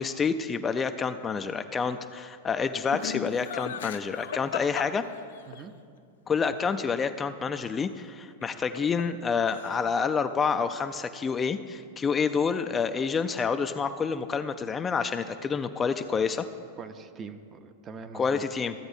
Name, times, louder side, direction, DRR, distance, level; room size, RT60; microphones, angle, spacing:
voice 1, 0.0-5.0 6.3-16.5 18.1-18.7, left 5 dB, 20° left, 9 dB, 0.4 m, -28 dB
Laughter, 2.9-5.6 8.4-9.2 9.5-10.0, left 9 dB, 75° left, 0.5 m, -36 dB
voice 2, 16.8-18.4, right 5 dB, 30° right, 9 dB, 0.6 m, -43 dB
14.5 x 7.9 x 2.7 m, 2.3 s
hypercardioid pair, 105°, 0 cm